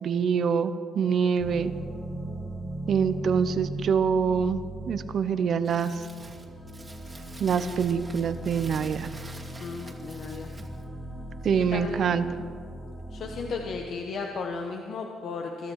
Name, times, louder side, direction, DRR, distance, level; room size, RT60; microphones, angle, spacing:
voice 1, 0.0-1.7 2.9-4.6 4.9-6.0 7.4-9.1 11.4-12.2, right 6 dB, 60° right, 12 dB, 0.9 m, -25 dB
sound 1, 1.4-13.9, right 2 dB, ahead, 2.9 m, -39 dB
Crumpling crinkling, 5.6-10.9, right 2 dB, 20° right, 2.3 m, -47 dB
voice 2, 9.6-10.5 11.5-12.2 13.1-15.7, left 4 dB, 65° left, 2 dB, 1.3 m, -35 dB
23.0 x 13.0 x 4.8 m, 2.3 s
cardioid pair, 90°, 0 cm